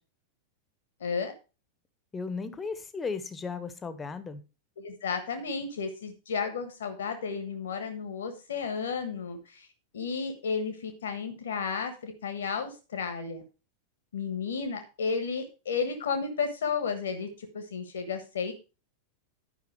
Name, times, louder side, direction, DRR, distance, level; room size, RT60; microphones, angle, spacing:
voice 1, 1.0-1.3 4.8-9.7 9.9-13.4 14.1-17.3 17.5-18.5, left 5 dB, 65° left, 7 dB, 1.4 m, -33 dB
voice 2, 2.1-4.4, left 4 dB, 15° left, 12 dB, 1.1 m, -35 dB
10.5 x 5.7 x 4.7 m, 0.32 s
figure-of-eight pair, 90°, 0 cm